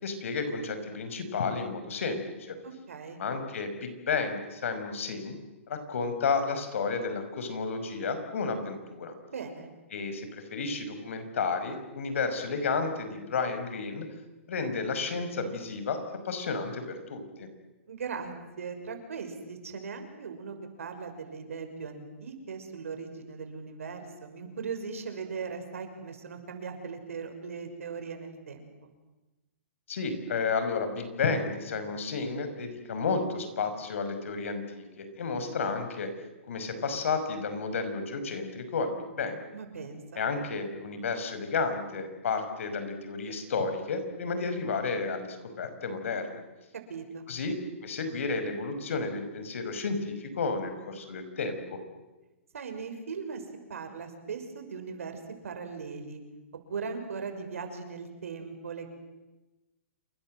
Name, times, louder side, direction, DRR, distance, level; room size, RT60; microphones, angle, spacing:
voice 1, 0.0-2.6 3.2-5.4 5.7-9.1 9.9-14.1 14.5-16.0 16.2-17.5 29.9-36.1 36.5-39.4 40.2-46.4 47.3-47.6 47.8-51.8, left 4 dB, 70° left, 8 dB, 5.7 m, -32 dB
voice 2, 2.6-3.2 9.3-9.7 17.9-28.9 39.5-40.3 46.7-47.3 52.5-56.2 56.7-58.9, right 5 dB, 90° right, 6 dB, 6.0 m, -39 dB
28.0 x 23.5 x 7.8 m, 1.1 s
hypercardioid pair, 160°, 7 cm